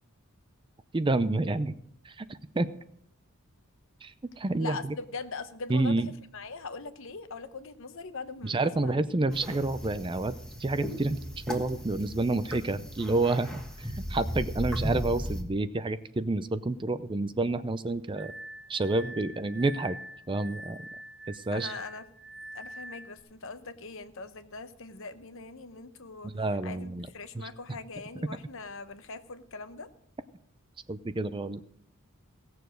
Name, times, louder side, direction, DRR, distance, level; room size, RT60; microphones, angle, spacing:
voice 1, 0.9-1.8 2.1-2.3 2.5-2.7 4.0-4.9 5.7-6.1 8.4-10.3 10.6-11.2 11.5-18.3 18.7-20.0 20.3-20.8 21.3-21.7 26.2-27.1 27.4-27.5 30.9-31.6, right 2 dB, 20° right, 13 dB, 0.5 m, -29 dB
voice 2, 4.6-9.1 21.5-22.1 22.5-26.3 26.6-29.9, left 4 dB, 60° left, 11 dB, 0.9 m, -41 dB
sound 1, 9.3-15.4, equal, 5° left, 1.4 m, -36 dB
Glass, 18.2-23.2, right 1 dB, 25° left, 2.3 m, -45 dB
17.5 x 6.9 x 6.3 m, 0.67 s
head